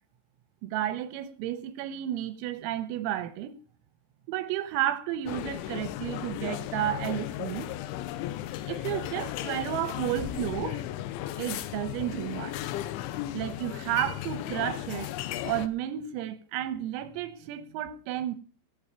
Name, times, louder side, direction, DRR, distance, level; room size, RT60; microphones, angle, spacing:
voice 1, 0.6-3.6 4.3-7.7 8.7-10.8 11.4-12.6 13.3-15.1 15.4-18.4, right 12 dB, 90° right, 3.8 m, -32 dB
sound 1, 5.3-15.7, left 13 dB, 80° left, 3.0 m, -35 dB
18.0 x 7.3 x 5.8 m
omnidirectional pair, 5.9 m